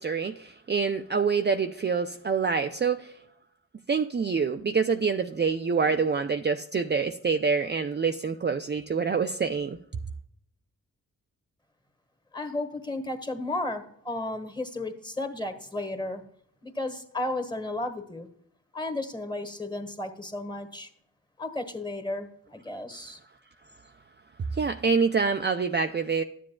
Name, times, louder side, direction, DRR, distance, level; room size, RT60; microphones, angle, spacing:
voice 1, 0.0-3.1 3.9-10.0 24.4-26.2, right 5 dB, 30° right, 6 dB, 0.5 m, -26 dB
voice 2, 12.3-16.2 16.6-18.3 18.7-20.9 21.4-23.2, left 2 dB, 10° left, 7 dB, 1.4 m, -33 dB
11.5 x 7.6 x 2.3 m, 0.69 s
cardioid pair, 45°, 35 cm